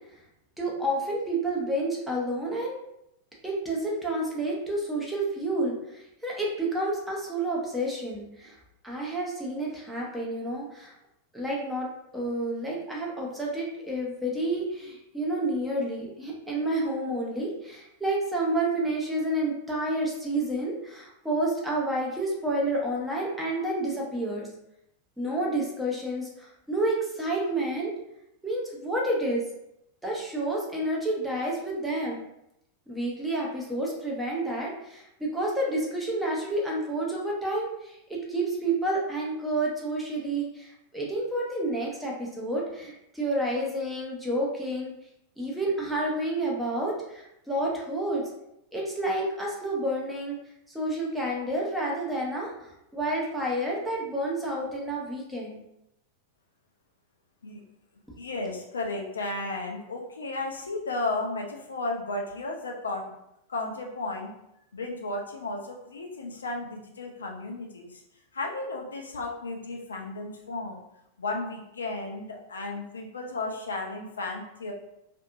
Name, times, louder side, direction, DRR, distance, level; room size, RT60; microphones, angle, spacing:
voice 1, 0.6-2.8 3.4-8.6 8.8-10.9 11.3-11.9 12.1-24.5 25.2-27.9 28.4-29.4 30.0-32.2 32.9-44.9 45.4-48.2 48.7-50.4 50.7-55.6, right 1 dB, 5° right, -4 dB, 0.7 m, -29 dB
voice 2, 58.2-63.2 63.5-64.4 64.7-68.0 68.3-70.8 71.2-74.7, left 2 dB, 70° left, 1 dB, 0.4 m, -34 dB
2.6 x 2.5 x 2.4 m, 0.82 s
figure-of-eight pair, 90°, 0 cm